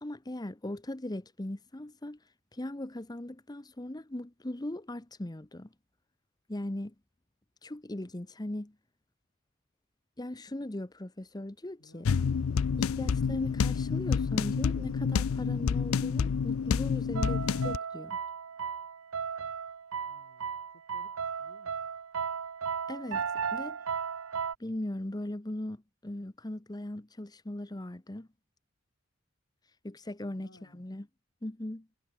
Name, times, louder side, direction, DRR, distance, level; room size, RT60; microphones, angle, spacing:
voice 1, 0.0-2.2 2.5-5.7 6.5-6.9 7.6-8.8 10.2-12.1 12.8-18.2 22.9-23.2 23.5-23.8 24.6-28.3 29.8-31.1 31.4-31.9, left 1 dB, 20° left, 0.9 m, -39 dB
voice 2, 11.8-12.1 20.0-21.9 30.3-30.9, left 1 dB, 70° left, 3.9 m, -61 dB
sound 1, 12.0-17.8, left 6 dB, 85° left, 0.4 m, -28 dB
sound 2, 17.1-24.5, right 6 dB, 85° right, 0.8 m, -35 dB
head